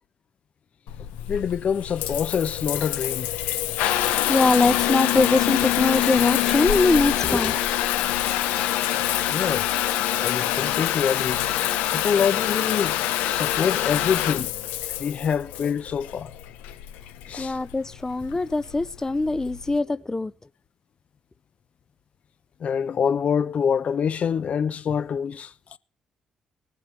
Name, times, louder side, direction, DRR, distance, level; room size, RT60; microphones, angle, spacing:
Water tap faucet / Bathtub (filling or washing) / Trickle dribble, 0.9-19.8, left 13 dB, 85° left, 1.0 m, -25 dB
voice 1, 1.3-3.3 9.3-9.7 10.2-11.5 11.9-13.0 13.3-14.5 15.0-16.3 17.3-17.6 22.6-25.5, left 7 dB, 60° left, 0.9 m, -25 dB
voice 2, 4.3-7.6 17.4-20.3, left 3 dB, 20° left, 0.6 m, -22 dB
18.5 x 7.8 x 7.8 m
supercardioid pair, 55°, 3 cm